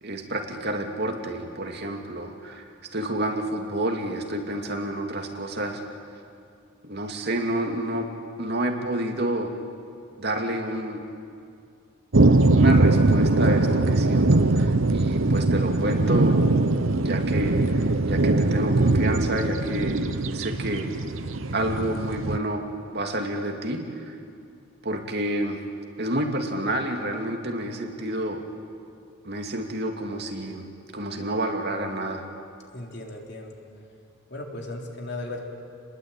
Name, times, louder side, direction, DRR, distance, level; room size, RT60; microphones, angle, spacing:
voice 1, 0.0-6.0 6.8-8.1 8.4-9.5 10.2-11.0 12.5-16.4 17.0-20.0 20.3-20.9 21.5-22.6 22.9-24.1 24.8-25.6 26.0-28.4 29.2-30.7 30.9-32.2, right 1 dB, 50° right, 3 dB, 2.5 m, -29 dB
sound 1, 12.1-22.4, right 2 dB, 70° right, 0.9 m, -21 dB
voice 2, 32.7-33.5 34.3-35.4, left 2 dB, 55° left, 1 dB, 3.6 m, -36 dB
28.5 x 21.0 x 9.0 m, 2.4 s
head